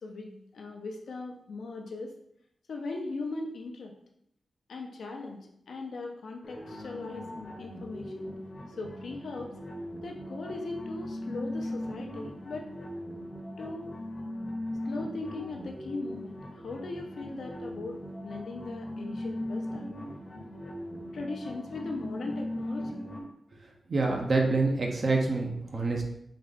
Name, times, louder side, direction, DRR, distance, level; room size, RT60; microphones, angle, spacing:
voice 1, 0.0-2.1 2.7-3.9 4.7-7.3 7.6-8.3 8.8-9.5 10.0-12.7 13.6-14.0 14.9-20.0 21.1-23.0, left 3 dB, 80° left, 1 dB, 0.6 m, -39 dB
sound 1, 6.4-23.2, left 1 dB, 40° left, 0.8 m, -39 dB
voice 2, 23.9-26.0, right 3 dB, 50° right, 0 dB, 0.6 m, -26 dB
3.7 x 2.4 x 3.4 m, 0.75 s
wide cardioid pair, 85°, 0 cm